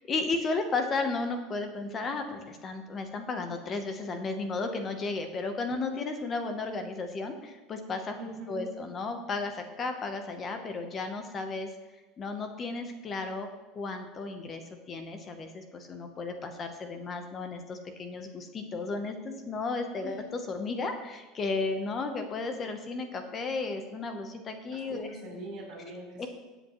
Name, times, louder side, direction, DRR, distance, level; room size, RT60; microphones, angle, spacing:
voice 1, 0.1-8.2 8.5-11.7 12.2-13.5 13.7-14.6 14.9-25.1 26.2-26.3, left 3 dB, 20° left, 6 dB, 0.8 m, -34 dB
voice 2, 8.2-8.7 20.0-20.1 24.7-26.3, right 1 dB, 45° right, -2 dB, 3.7 m, -42 dB
17.0 x 8.1 x 3.0 m, 1.2 s
cardioid pair, 175°, 0 cm